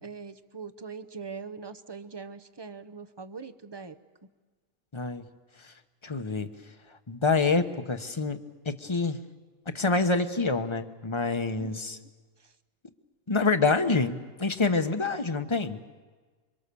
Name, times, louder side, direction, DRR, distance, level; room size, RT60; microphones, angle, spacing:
voice 1, 0.0-4.0 11.6-12.1 12.4-12.5, right 5 dB, 25° right, 11 dB, 0.7 m, -42 dB
voice 2, 4.9-5.2 6.0-6.5 7.1-9.2 9.7-12.0 13.3-15.8, left 3 dB, 25° left, 8 dB, 1.0 m, -27 dB
27.5 x 23.5 x 7.0 m, 1.4 s
omnidirectional pair, 1.5 m